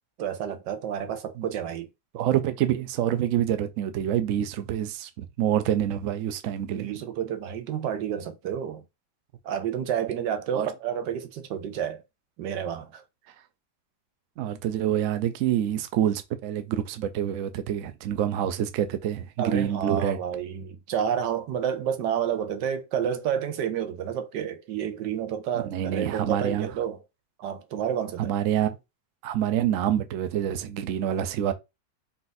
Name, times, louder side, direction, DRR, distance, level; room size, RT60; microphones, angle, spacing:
voice 1, 0.2-1.9 6.7-8.8 9.4-12.0 12.4-13.0 19.4-27.0 27.4-28.3, right 8 dB, 70° right, 1.3 m, -30 dB
voice 2, 2.1-6.9 10.5-10.7 14.4-20.2 25.7-26.7 28.2-28.8 29.2-31.5, right 10 dB, 90° right, 0.7 m, -27 dB
4.1 x 2.6 x 3.9 m
omnidirectional pair, 2.0 m